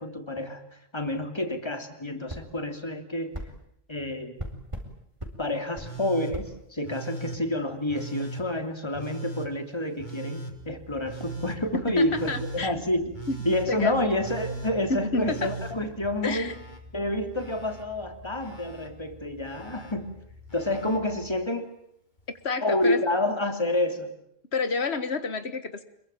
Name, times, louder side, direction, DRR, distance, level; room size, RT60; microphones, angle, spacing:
voice 1, 0.0-3.3 3.9-4.4 5.4-13.1 13.4-16.5 16.9-20.2 20.5-21.7 22.6-24.1, left 1 dB, 25° left, 7 dB, 3.0 m, -29 dB
sound 1, 2.3-2.5 3.3-3.5 4.4-4.9 5.2-5.4 5.8-5.9 6.3-6.5, right 1 dB, 30° right, 4.3 m, -36 dB
Telephone, 5.8-6.3 6.8-7.4 7.9-8.4 8.9-9.5 10.0-10.5 11.0-11.6 12.1-12.6 13.1-13.7 14.2-14.7 15.2-16.8 17.1-17.8 18.4-18.9 19.4-19.9 20.5-21.0 22.2-22.3, right 2 dB, 45° left, 3.7 m, -39 dB
sound 2, 10.5-21.4, left 1 dB, 75° right, 7.3 m, -49 dB
voice 2, 11.7-12.7 13.3-13.4 13.7-14.0 14.9-15.5 16.2-16.5 22.4-23.0 24.5-25.8, left 4 dB, 85° left, 11 dB, 1.8 m, -29 dB
26.5 x 22.5 x 9.0 m, 0.70 s
omnidirectional pair, 1.1 m